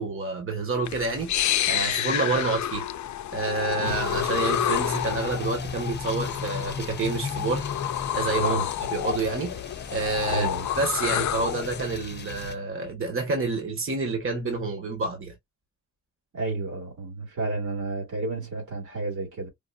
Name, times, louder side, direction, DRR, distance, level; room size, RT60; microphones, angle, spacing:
voice 1, 0.0-2.8 3.3-7.7 8.1-8.6 8.9-9.6 9.9-10.5 10.8-15.4, right 3 dB, 45° right, 1.6 m, -28 dB
sound 1, 0.9-11.9, left 11 dB, 70° left, 0.5 m, -29 dB
sound 2, 3.8-12.6, left 5 dB, 35° left, 0.7 m, -37 dB
voice 2, 10.3-10.7 16.3-19.5, right 3 dB, 80° right, 2.9 m, -31 dB
5.2 x 2.6 x 2.6 m
cardioid pair, 90°, 30 cm